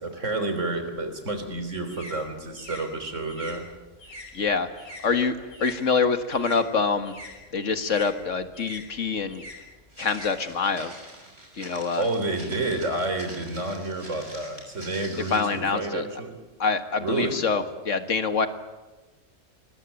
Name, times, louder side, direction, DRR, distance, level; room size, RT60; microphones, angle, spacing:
voice 1, 0.0-3.7 11.6-16.4 17.0-17.4, right 2 dB, 75° right, 8 dB, 4.0 m, -30 dB
sound 1, 1.0-5.8 6.1-10.9, left 1 dB, 50° left, 5.9 m, -45 dB
voice 2, 4.3-4.7 5.0-7.2 7.5-9.4 10.0-10.9 11.6-12.1 15.3-16.1 16.6-18.5, left 5 dB, 80° left, 9 dB, 2.0 m, -25 dB
Walk footsteps, 9.9-15.6, right 1 dB, 55° right, 6.2 m, -45 dB
25.0 x 22.0 x 8.9 m, 1.1 s
omnidirectional pair, 1.3 m